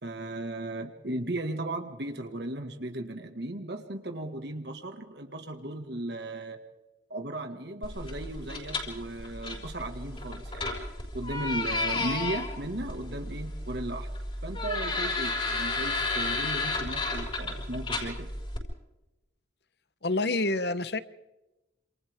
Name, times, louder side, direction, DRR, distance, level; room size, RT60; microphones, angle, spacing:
voice 1, 0.0-6.6 7.1-10.7 11.1-14.1 14.4-18.3, right 1 dB, 55° right, 5 dB, 1.9 m, -36 dB
sound 1, 7.8-18.6, left 2 dB, 30° left, 5.5 m, -33 dB
voice 2, 20.0-21.0, left 2 dB, 55° left, 14 dB, 1.0 m, -27 dB
28.0 x 27.5 x 3.7 m, 1.0 s
head